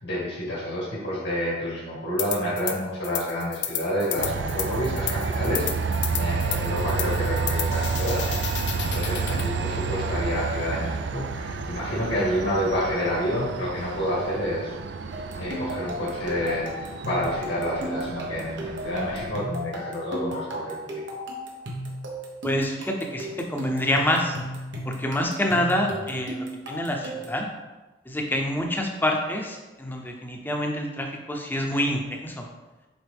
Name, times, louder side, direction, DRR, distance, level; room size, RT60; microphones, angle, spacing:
voice 1, 0.0-8.3 8.8-14.8 15.4-21.3, equal, 85° left, -8 dB, 2.0 m, -29 dB
sound 1, 2.2-2.8 3.0-9.5, left 10 dB, 70° left, 0.6 m, -32 dB
Train, 4.2-19.3, right 4 dB, 65° right, 0.4 m, -30 dB
sound 2, 15.1-27.4, equal, 85° right, 1.2 m, -35 dB
voice 2, 22.4-24.4 24.8-27.5 28.1-32.5, left 1 dB, 10° left, 1 dB, 0.7 m, -27 dB
8.1 x 3.8 x 3.5 m, 1.2 s
head